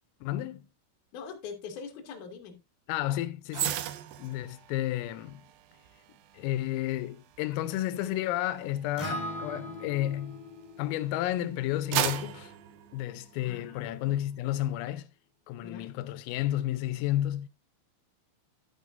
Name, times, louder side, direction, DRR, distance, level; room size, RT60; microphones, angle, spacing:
voice 1, 0.2-0.7 2.9-3.7 4.2-5.4 6.3-10.4 10.8-12.5 12.9-15.1 15.5-17.5, left 14 dB, 85° left, 3.4 m, -31 dB
voice 2, 1.1-2.6 13.4-14.2 15.6-15.9, left 6 dB, 55° left, 2.5 m, -43 dB
sound 1, 3.5-10.9 11.4-13.7 14.1-14.3, right 12 dB, 80° right, 2.4 m, -37 dB
Acoustic guitar, 9.0-13.2, equal, 15° left, 1.6 m, -41 dB
12.0 x 9.3 x 2.5 m
omnidirectional pair, 5.9 m